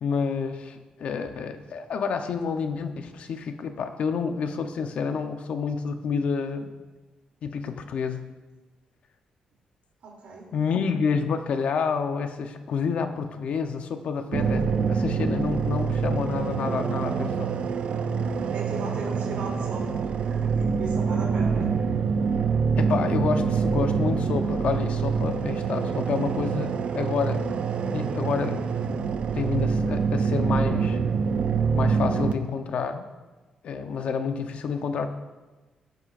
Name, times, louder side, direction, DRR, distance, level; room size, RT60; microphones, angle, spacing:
voice 1, 0.0-6.7 7.4-8.3 10.5-17.5 22.8-27.5 27.9-29.0 29.3-31.0 31.7-33.0 33.6-35.1, left 5 dB, 65° left, 7 dB, 0.8 m, -29 dB
voice 2, 10.0-10.5 18.5-21.7, right 3 dB, 80° right, -2 dB, 3.0 m, -37 dB
sound 1, 14.3-32.3, right 5 dB, 60° right, 0.5 m, -25 dB
18.0 x 8.0 x 2.6 m, 1.2 s
wide cardioid pair, 150°, 2 cm